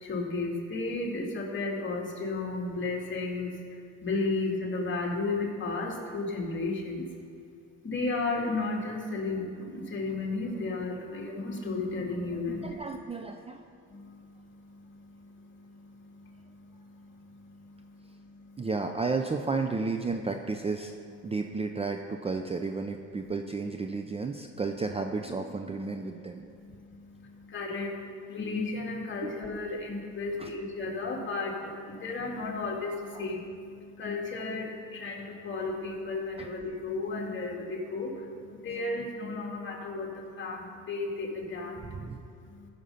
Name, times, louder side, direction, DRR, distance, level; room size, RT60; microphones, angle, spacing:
voice 1, 0.0-3.5 4.0-7.0 7.8-12.7 27.5-27.9 28.3-33.4 34.0-38.1 38.5-41.8, left 3 dB, 35° left, 0 dB, 2.2 m, -33 dB
voice 2, 12.6-13.6 18.6-20.9 21.2-26.5 28.1-28.2 29.2-29.4 30.4-30.5 33.1-33.3 36.4-36.5 41.8-42.2, right 4 dB, 20° right, 5 dB, 0.5 m, -33 dB
14.0 x 6.6 x 5.6 m, 2.4 s
cardioid pair, 110°, 33 cm